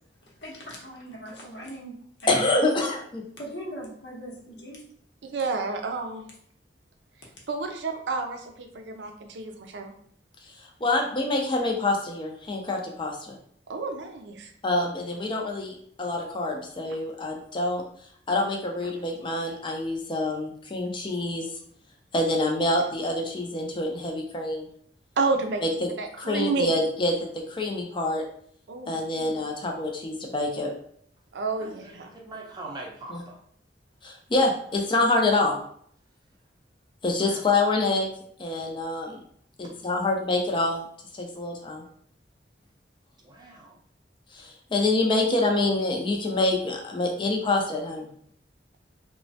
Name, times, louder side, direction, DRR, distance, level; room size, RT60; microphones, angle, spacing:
voice 1, 0.4-2.9 3.4-4.8, equal, 70° left, -3 dB, 0.8 m, -39 dB
voice 2, 2.3-3.2 10.8-13.4 14.6-17.8 18.3-21.5 22.1-24.7 25.6-25.9 26.2-28.2 28.9-30.7 33.1-33.2 34.0-35.5 37.0-38.1 38.4-39.2 39.6-40.9 41.1-41.8 44.3-48.1, left 2 dB, 30° left, 1 dB, 0.5 m, -26 dB
voice 3, 5.2-6.2 7.5-9.9 13.7-14.5 25.2-25.6 26.0-26.7 28.7-29.3 31.3-32.1, right 4 dB, 70° right, 4 dB, 0.4 m, -30 dB
voice 4, 31.6-33.4 37.2-37.4 39.6-39.7 43.2-43.8, right 2 dB, 25° right, -1 dB, 0.5 m, -42 dB
3.0 x 2.1 x 2.7 m, 0.63 s
head